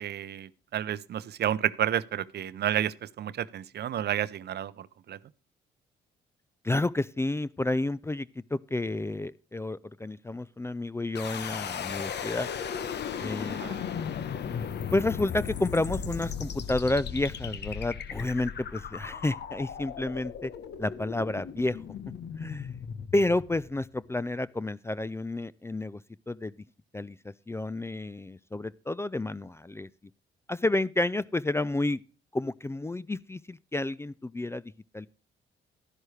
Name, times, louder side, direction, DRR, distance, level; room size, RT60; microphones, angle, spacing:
voice 1, 0.0-5.2 13.5-13.8, right 10 dB, 55° right, 0.6 m, -31 dB
voice 2, 6.6-12.5 13.2-13.6 14.9-20.5 20.8-21.8 22.4-22.7 23.1-26.0 26.3-26.5 26.9-29.9 30.5-32.0 32.3-34.6 34.9-35.1, left 2 dB, 15° left, 0.4 m, -30 dB
sound 1, 11.2-24.1, left 7 dB, 60° left, 1.0 m, -36 dB
11.5 x 11.0 x 3.2 m
supercardioid pair, 60°, 20 cm